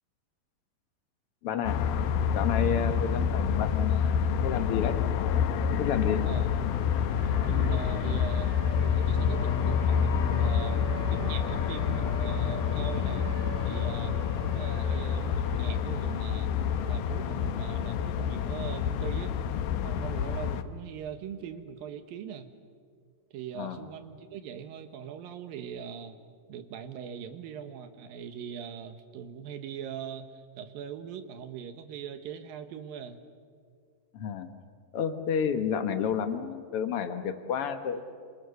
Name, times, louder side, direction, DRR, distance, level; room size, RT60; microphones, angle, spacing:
voice 1, 1.4-1.8 2.3-5.0 5.7-6.2 23.5-23.8 34.1-34.5 34.9-38.0, left 7 dB, 60° left, 9 dB, 1.5 m, -31 dB
sound 1, 1.6-20.6, left 7 dB, 90° left, 2.8 m, -28 dB
Siren, 5.2-5.3 5.6-17.7, right 4 dB, 60° right, 3.2 m, -45 dB
voice 2, 7.4-10.8 11.1-13.3 13.6-16.5 16.8-19.3 19.8-22.5 23.3-26.2 26.5-33.2, right 8 dB, 80° right, 9 dB, 3.0 m, -41 dB
28.0 x 26.0 x 6.9 m, 2.2 s
omnidirectional pair, 4.1 m